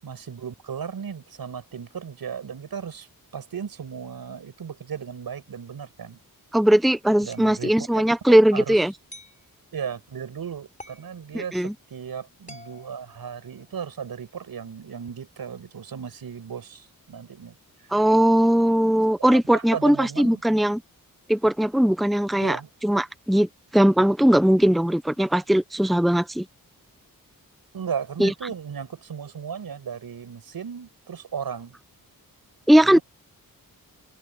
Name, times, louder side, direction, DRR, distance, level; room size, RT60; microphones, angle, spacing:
voice 1, 0.0-6.2 7.2-7.9 8.2-8.8 9.7-17.6 19.3-20.4 22.4-22.7 27.7-31.8 32.8-33.0, right 7 dB, 85° right, 6.1 m, -35 dB
voice 2, 6.5-8.9 11.3-11.7 17.9-20.8 21.3-26.5 28.2-28.3 32.7-33.0, right 1 dB, ahead, 0.8 m, -19 dB
sound 1, 7.3-7.6 9.1-9.4 10.8-11.1 12.5-13.9, left 2 dB, 20° left, 4.1 m, -47 dB
wide cardioid pair, 110°, 35 cm